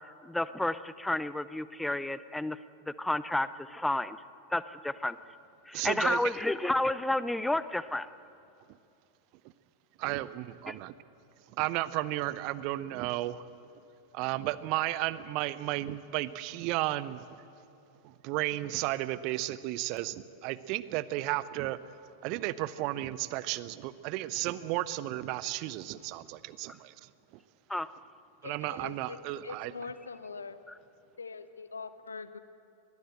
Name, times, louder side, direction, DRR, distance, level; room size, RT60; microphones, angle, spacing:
voice 1, 0.2-2.6 3.0-4.2 4.5-5.2 5.7-8.1 10.7-10.8 27.7-27.9, left 1 dB, 5° left, 16 dB, 0.5 m, -31 dB
voice 2, 5.7-6.2 10.0-10.9 11.5-13.5 14.1-17.4 18.0-21.8 22.2-27.1 28.4-29.7, right 16 dB, 45° right, 17 dB, 0.7 m, -33 dB
voice 3, 28.4-29.2 29.4-30.6 31.2-32.4, left 4 dB, 75° left, 12 dB, 1.1 m, -42 dB
22.5 x 19.5 x 7.8 m, 2.7 s
figure-of-eight pair, 90°, 0 cm